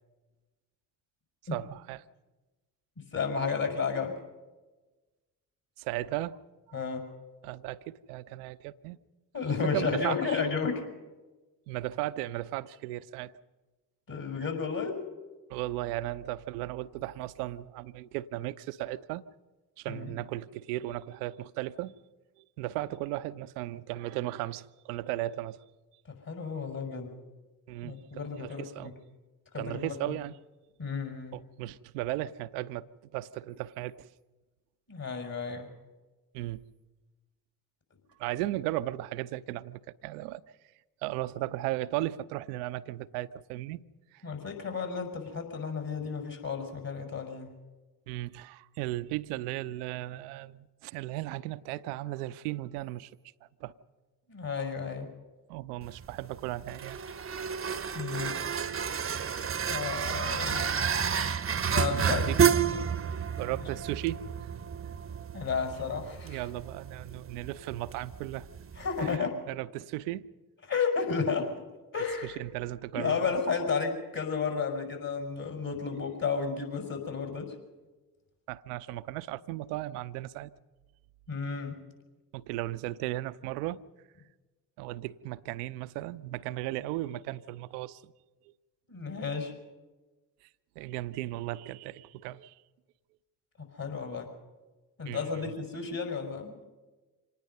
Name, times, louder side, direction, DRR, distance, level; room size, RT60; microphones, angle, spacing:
voice 1, 1.5-2.0 5.8-6.4 7.4-9.0 9.7-10.4 11.7-13.3 15.5-19.2 19.8-21.9 22.4-25.6 27.7-28.9 29.5-30.4 31.3-34.1 36.3-36.6 38.2-40.4 41.0-43.8 44.1-44.2 48.1-53.1 53.6-53.7 55.5-57.0 61.9-62.6 63.4-64.2 66.2-68.5 69.0-70.3 72.2-73.3 78.5-80.5 82.3-83.8 84.8-88.1 90.8-92.5 95.1-95.5, right 16 dB, 75° right, 0.7 m, -36 dB
voice 2, 3.0-4.2 6.7-7.1 9.3-10.9 14.1-15.0 19.9-20.1 26.3-27.2 27.8-28.9 29.5-29.9 30.8-31.4 34.9-35.7 44.2-47.5 54.3-55.1 57.9-58.4 59.7-60.7 61.3-62.4 65.3-66.5 68.8-69.4 70.7-71.5 71.9-72.4 72.9-77.5 81.3-81.8 88.9-89.5 93.7-94.3 95.0-96.6, left 5 dB, 45° left, 5.7 m, -32 dB
sound 1, 55.8-69.2, right 7 dB, 30° right, 0.9 m, -31 dB
25.5 x 19.0 x 5.5 m
hypercardioid pair, 40°, 46 cm